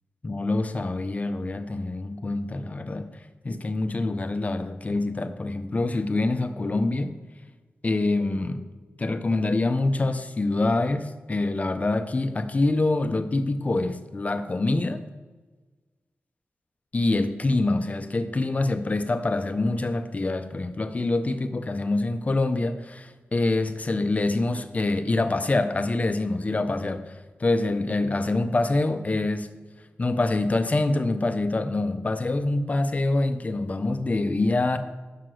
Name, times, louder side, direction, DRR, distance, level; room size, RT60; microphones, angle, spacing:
voice 1, 0.2-7.2 7.8-8.6 9.0-15.0 16.9-29.5 30.0-34.8, left 2 dB, 35° left, 0.6 m, -25 dB
5.9 x 5.6 x 6.3 m
wide cardioid pair, 100°, 4 cm